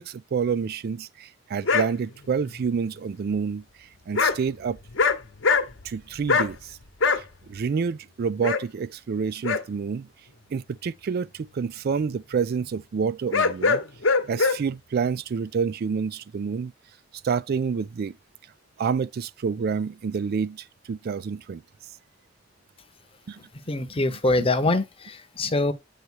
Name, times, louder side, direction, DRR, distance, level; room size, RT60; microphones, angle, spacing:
voice 1, 0.0-4.8 5.8-6.8 7.5-10.1 10.5-13.8 14.3-16.7 17.2-18.2 18.8-21.6 23.3-23.4 23.9-24.5 25.4-25.5, right 6 dB, 55° right, 0.3 m, -28 dB
sound 1, 1.6-1.9 4.1-4.4 4.8-5.2 5.4-5.9 6.3-6.5 7.0-7.2 8.4-8.6 9.4-9.6 13.3-14.6, left 4 dB, 80° left, 1.0 m, -21 dB
voice 2, 23.7-25.7, left 2 dB, 30° left, 0.8 m, -24 dB
8.3 x 3.0 x 6.3 m
head